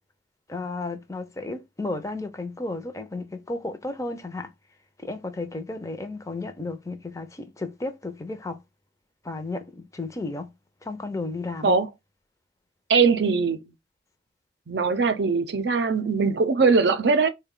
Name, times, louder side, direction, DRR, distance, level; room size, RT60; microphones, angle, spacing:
voice 1, 0.5-4.5 5.0-8.6 9.2-10.5 10.8-11.7, left 2 dB, 20° left, 0.6 m, -33 dB
voice 2, 12.9-13.7 14.7-17.3, right 4 dB, 65° right, 0.5 m, -21 dB
3.9 x 2.2 x 3.7 m
head